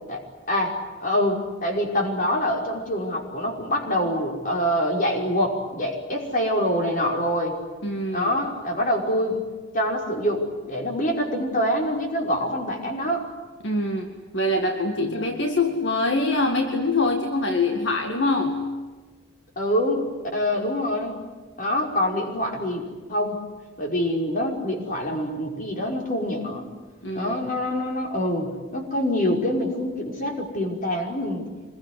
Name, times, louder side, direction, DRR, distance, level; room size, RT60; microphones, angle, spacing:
voice 1, 0.5-7.5 8.1-9.4 9.7-13.2 15.0-15.3 19.6-20.1 20.3-21.2 21.6-23.4 23.8-26.7 27.1-31.5, equal, 45° left, 1 dB, 5.4 m, -25 dB
voice 2, 7.8-8.4 13.6-18.7 27.0-27.4, left 2 dB, 65° left, 3 dB, 2.1 m, -24 dB
26.0 x 22.0 x 9.7 m, 1.3 s
head